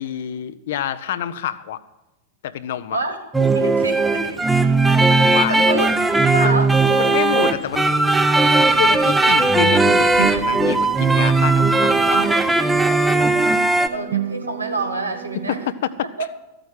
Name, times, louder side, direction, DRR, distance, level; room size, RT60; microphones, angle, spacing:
voice 1, 0.0-1.8 2.4-3.0 5.3-5.9 6.4-6.6 6.9-7.9 8.7-12.2 15.7-15.9, left 10 dB, 55° left, 15 dB, 0.6 m, -27 dB
voice 2, 2.9-4.4 5.3-5.9 6.3-6.7 13.9-15.6 16.2-16.3, right 2 dB, 80° right, 5 dB, 1.6 m, -27 dB
sound 1, 3.3-13.9, right 3 dB, 10° right, 0.8 m, -17 dB
sound 2, 8.6-15.7, right 10 dB, 60° right, 0.5 m, -32 dB
14.0 x 8.8 x 6.2 m, 0.99 s
figure-of-eight pair, 90°, 0 cm